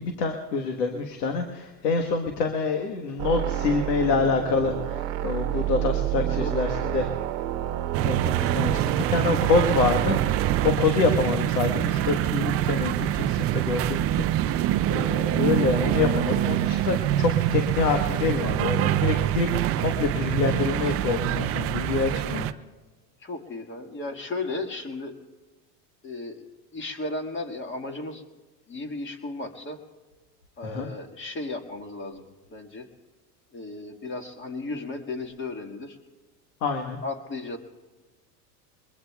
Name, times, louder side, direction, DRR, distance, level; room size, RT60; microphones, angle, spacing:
voice 1, 0.0-7.1 8.0-19.5 19.8-22.5 30.6-30.9 36.6-37.0, left 4 dB, 85° left, 4 dB, 1.5 m, -26 dB
sound 1, 3.2-10.7, right 13 dB, 55° right, 1.1 m, -29 dB
voice 2, 6.4-7.0 8.4-8.6 23.2-25.1 26.0-26.4 26.7-28.2 28.7-29.8 30.6-32.9 33.5-36.0 37.0-37.6, left 2 dB, 25° left, 5 dB, 1.8 m, -35 dB
sound 2, 7.9-22.5, right 12 dB, 30° right, 0.4 m, -25 dB
23.0 x 21.5 x 2.3 m, 1.3 s
supercardioid pair, 110°, 48 cm